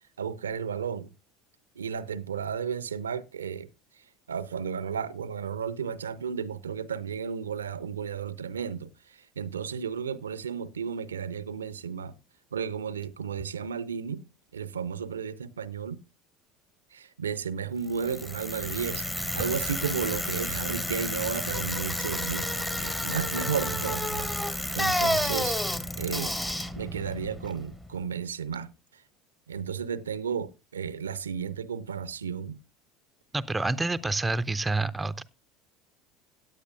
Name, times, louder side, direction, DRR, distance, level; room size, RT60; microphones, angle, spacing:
voice 1, 0.2-1.1 1.8-3.7 4.3-12.1 12.5-14.2 14.5-16.0 16.9-25.6 26.0-26.3 26.8-28.7 29.5-32.6, right 7 dB, 75° right, 0.5 m, -33 dB
Bicycle, 17.9-28.0, left 1 dB, 10° left, 1.2 m, -31 dB
voice 2, 33.3-35.2, right 2 dB, 10° right, 0.6 m, -28 dB
16.5 x 9.9 x 2.5 m
figure-of-eight pair, 70°, 0 cm